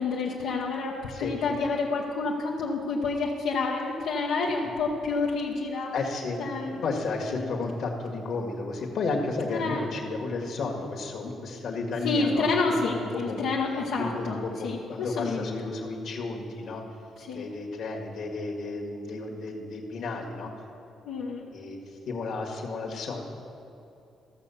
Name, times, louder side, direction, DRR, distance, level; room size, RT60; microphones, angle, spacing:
voice 1, 0.0-5.9 6.4-6.8 7.3-7.4 9.6-9.8 12.0-14.8 15.2-15.5 17.3-17.5 21.1-21.4, left 4 dB, 90° left, -4 dB, 1.1 m, -28 dB
voice 2, 5.9-6.4 6.8-13.4 14.0-16.8 17.3-20.5 21.5-23.2, left 3 dB, 70° left, 1 dB, 1.9 m, -33 dB
14.0 x 6.7 x 7.1 m, 2.9 s
cardioid pair, 90°, 0 cm